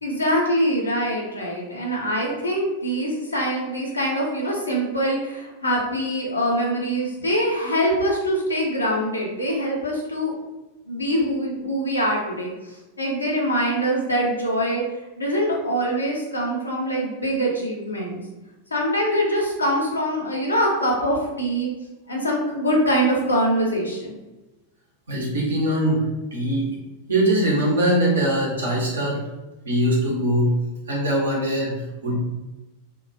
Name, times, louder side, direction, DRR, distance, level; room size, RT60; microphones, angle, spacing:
voice 1, 0.0-10.3 10.9-14.8 15.2-18.2 18.7-21.7 22.1-24.2, equal, 80° left, -2 dB, 0.7 m, -24 dB
voice 2, 25.1-26.0 26.3-26.7 27.1-29.2 29.6-30.5 30.9-32.1, right 1 dB, 70° right, -4 dB, 0.9 m, -22 dB
2.8 x 2.3 x 2.5 m, 1.1 s
figure-of-eight pair, 90°, 0 cm